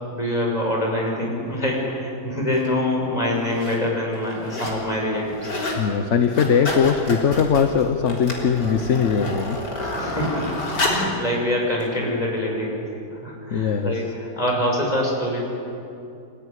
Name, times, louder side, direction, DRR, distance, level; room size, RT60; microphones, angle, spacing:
voice 1, 0.1-5.5 9.8-12.8 13.1-15.4, left 1 dB, 20° left, -1 dB, 6.2 m, -25 dB
sound 1, 2.5-2.7 3.4-3.8 4.1-4.8 5.1-5.8 6.2-11.1 11.8-11.9, left 2 dB, 80° left, 4.4 m, -29 dB
voice 2, 5.8-9.7 13.5-14.0, left 6 dB, 50° left, 7 dB, 1.2 m, -20 dB
27.0 x 15.0 x 9.9 m, 2.7 s
omnidirectional pair, 1.8 m